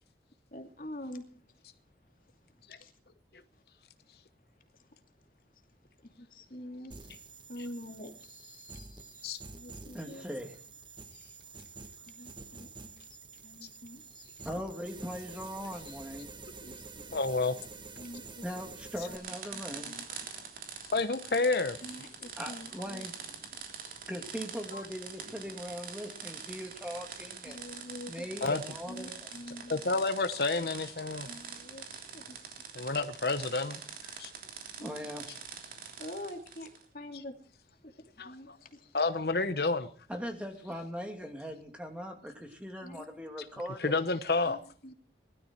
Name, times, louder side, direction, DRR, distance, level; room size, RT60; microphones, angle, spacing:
voice 1, 0.5-1.3 2.8-2.9 3.5-3.6 4.7-4.9 6.0-6.9 7.5-10.3 12.0-14.3 16.6-17.4 18.0-18.5 19.1-19.2 19.5-20.1 20.4-20.5 21.8-23.1 27.4-28.6 28.9-30.0 31.3-32.9 34.8-34.9 36.0-37.4 37.8-38.8 42.8-43.1 44.5-44.9, left 1 dB, 50° left, 2.5 m, -47 dB
sound 1, 6.9-19.2, right 4 dB, 25° right, 1.4 m, -49 dB
voice 2, 9.9-10.5 14.4-16.3 18.4-19.9 22.4-23.1 24.1-27.6 28.1-29.3 34.8-35.2 40.1-44.0, equal, 5° right, 2.4 m, -40 dB
voice 3, 17.1-17.5 20.9-21.8 24.7-24.8 28.4-28.6 29.7-31.3 32.7-33.8 34.2-34.3 38.2-38.6 38.9-39.9 43.8-44.6, left 3 dB, 65° left, 1.0 m, -29 dB
sound 2, 19.1-36.8, right 6 dB, 50° right, 3.3 m, -45 dB
20.5 x 13.0 x 4.5 m
head